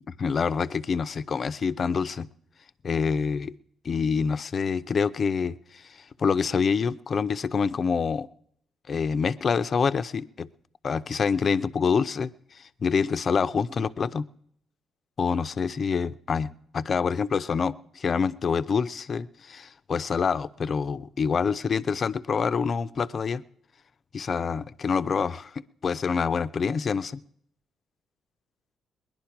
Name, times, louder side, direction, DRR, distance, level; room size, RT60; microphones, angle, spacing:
voice 1, 0.1-2.3 2.8-3.5 3.8-8.3 8.9-10.5 10.8-14.3 15.2-23.4 24.1-27.2, left 5 dB, 45° left, 13 dB, 0.6 m, -26 dB
20.0 x 11.0 x 5.9 m, 0.69 s
cardioid pair, 90°, 0 cm